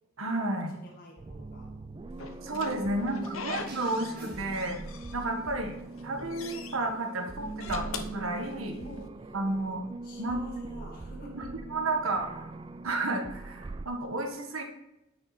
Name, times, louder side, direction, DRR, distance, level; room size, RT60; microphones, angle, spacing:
voice 1, 0.2-0.8 2.4-4.8 5.1-7.8 8.1-8.8 9.3-9.8 10.2-10.4 11.3-12.4 12.8-14.6, right 2 dB, 75° right, 3 dB, 1.5 m, -32 dB
voice 2, 0.7-1.7 2.9-3.6 5.4-5.8 8.8-9.3 10.0-11.5, equal, 45° left, -3 dB, 2.0 m, -48 dB
sound 1, 1.2-13.9, right 3 dB, 25° right, 0.3 m, -42 dB
Slam / Squeak, 2.2-4.2 4.5-5.5 5.9-6.8 7.4-9.0, left 5 dB, 75° left, 0.8 m, -42 dB
sound 2, 3.7-5.4, right 1 dB, 45° right, 1.9 m, -49 dB
9.4 x 6.2 x 4.1 m, 0.89 s
head